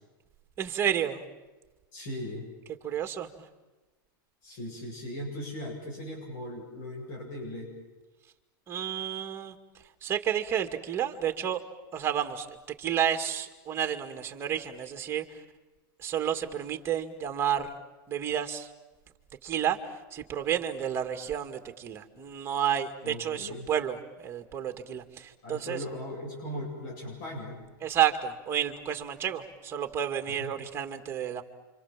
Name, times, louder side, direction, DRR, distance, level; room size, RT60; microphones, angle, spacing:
voice 1, 0.6-1.2 2.8-3.3 8.7-9.6 10.0-11.6 11.9-12.5 12.8-15.2 16.0-17.7 18.1-18.7 19.4-19.8 20.1-25.8 27.8-31.4, right 9 dB, 20° right, 6 dB, 2.2 m, -30 dB
voice 2, 1.9-2.5 4.4-7.7 23.0-23.7 25.4-27.6 30.4-30.6, left 1 dB, 60° left, -2 dB, 7.9 m, -38 dB
28.0 x 26.5 x 7.5 m, 1.1 s
supercardioid pair, 145°, 12 cm